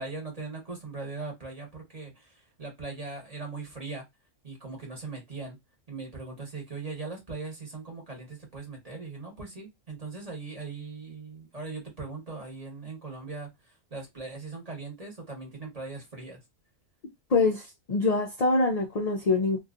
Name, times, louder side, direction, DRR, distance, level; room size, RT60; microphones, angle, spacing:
voice 1, 0.0-4.0 4.4-5.6 5.9-16.4, right 3 dB, 30° right, 1.0 m, -40 dB
voice 2, 17.3-19.6, left 3 dB, 80° left, 0.3 m, -25 dB
2.6 x 2.3 x 2.4 m
omnidirectional pair, 1.3 m